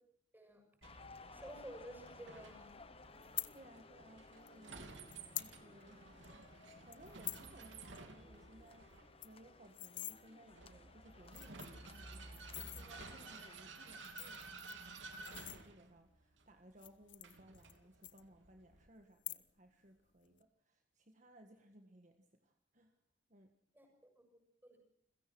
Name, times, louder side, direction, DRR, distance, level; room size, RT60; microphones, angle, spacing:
sound 1, 0.8-13.6, left 4 dB, 30° left, 1.0 m, -60 dB
Vehicle, 0.8-18.9, right 3 dB, 85° right, 3.0 m, -54 dB
voice 1, 1.2-2.8 23.7-24.8, right 1 dB, 10° right, 3 dB, 6.8 m, -53 dB
voice 2, 3.1-6.4 6.8-23.0 23.3-23.5, right 1 dB, 40° right, 5 dB, 1.6 m, -62 dB
sound 2, 3.2-3.5 4.5-4.6 5.1-5.5 5.9-6.0 6.2-6.5 6.9-7.5 7.8-8.0 8.3-8.4 8.7-8.8 9.0-10.2 10.8-10.9 11.3-11.9 12.4-12.8 13.8-16.0 16.7-17.8 18.0-18.7 19.1-19.7 20.0-20.4, left 16 dB, 90° left, 1.2 m, -46 dB
29.5 x 16.5 x 6.1 m, 0.69 s
head